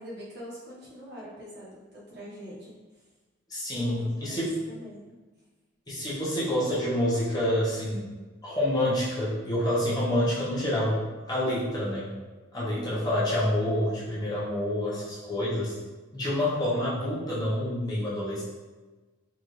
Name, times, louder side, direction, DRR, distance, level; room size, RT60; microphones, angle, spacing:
voice 1, 0.0-2.8 3.7-5.2 12.5-13.1, equal, 55° right, -7 dB, 1.1 m, -43 dB
voice 2, 3.5-4.6 5.9-8.0 8.4-12.1 12.5-15.7 16.1-18.4, left 1 dB, 20° left, -8 dB, 1.0 m, -27 dB
3.9 x 2.6 x 3.2 m, 1.2 s
head